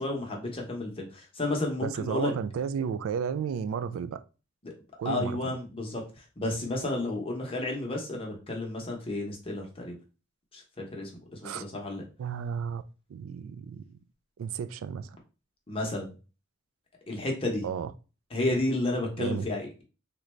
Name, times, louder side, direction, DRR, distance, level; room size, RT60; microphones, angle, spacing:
voice 1, 0.0-2.3 4.6-4.7 5.0-6.0 6.4-9.9 10.5-11.1 11.4-12.0 15.7-16.1 17.1-17.6 18.3-19.8, left 2 dB, 30° left, 0.8 m, -31 dB
voice 2, 1.8-4.2 5.0-5.4 11.4-11.6 12.2-12.8 13.1-14.0 14.4-15.2 17.6-17.9 18.5-18.6 19.2-19.5, right 7 dB, 85° right, 0.3 m, -33 dB
3.8 x 2.2 x 3.0 m
head